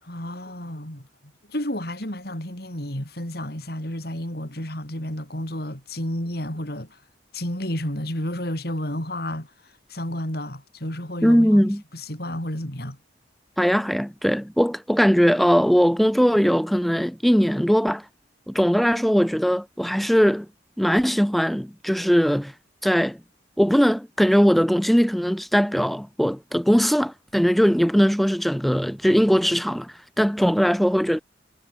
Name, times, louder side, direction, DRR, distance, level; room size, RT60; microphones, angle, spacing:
voice 1, 0.0-1.0 1.5-7.0 7.3-13.0, left 1 dB, 55° left, 6.4 m, -31 dB
voice 2, 11.2-11.8 13.6-18.0 18.5-20.5 20.8-22.5 22.8-23.2 23.6-31.2, equal, ahead, 0.3 m, -20 dB
head